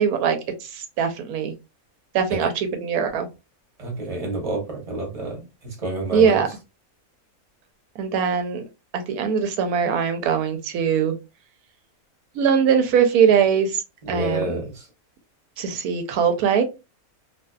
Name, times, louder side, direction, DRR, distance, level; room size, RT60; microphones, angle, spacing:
voice 1, 0.0-1.5 2.1-3.3 6.1-6.5 8.0-8.6 8.9-11.1 12.3-13.8 14.1-14.6 15.6-16.6, right 7 dB, 90° right, 1.1 m, -21 dB
voice 2, 3.8-5.4 5.8-6.4 14.1-14.8, right 2 dB, 30° right, 0.8 m, -28 dB
2.6 x 2.4 x 2.2 m
omnidirectional pair, 1.5 m